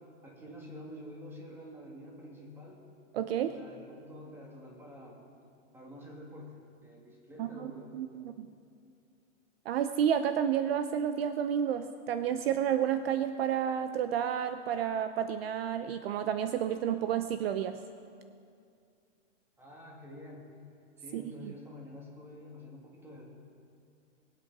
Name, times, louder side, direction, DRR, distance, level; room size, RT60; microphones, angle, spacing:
voice 1, 0.0-2.8 3.5-5.2 5.7-8.3 19.6-20.5 21.0-23.2, equal, 5° right, -2 dB, 1.9 m, -48 dB
voice 2, 3.1-3.5 7.4-8.5 9.7-17.8 21.1-21.2, right 9 dB, 55° right, 10 dB, 0.6 m, -30 dB
21.0 x 8.4 x 6.0 m, 2.3 s
supercardioid pair, 160°, 37 cm